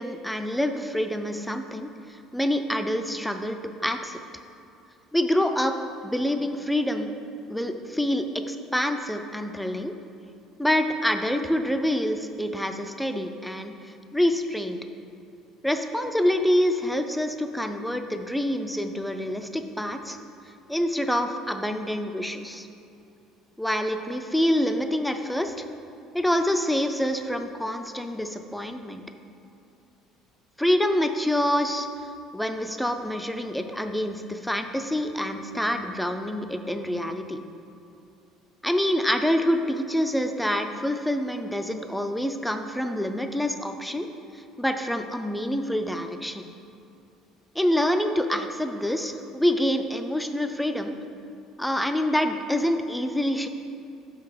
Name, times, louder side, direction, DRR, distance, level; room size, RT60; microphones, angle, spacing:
voice 1, 0.0-4.2 5.1-5.8 6.0-7.1 7.5-9.9 10.6-14.8 15.6-20.2 20.7-22.7 23.6-25.7 26.1-29.0 30.6-31.9 32.3-37.4 38.6-44.1 44.3-46.5 47.6-51.0 51.6-53.5, equal, ahead, 7 dB, 0.3 m, -26 dB
6.7 x 5.7 x 4.9 m, 2.6 s
cardioid pair, 150°, 0 cm